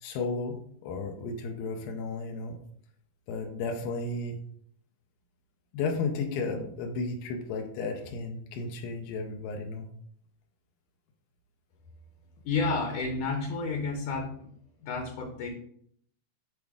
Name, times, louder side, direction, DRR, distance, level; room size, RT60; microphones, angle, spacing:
voice 1, 0.0-2.6 3.3-4.4 5.7-9.9, left 3 dB, 90° left, 3 dB, 2.5 m, -33 dB
voice 2, 12.5-14.4 14.8-15.5, left 4 dB, 70° left, 2 dB, 2.0 m, -30 dB
8.1 x 3.5 x 3.5 m, 0.65 s
omnidirectional pair, 4.1 m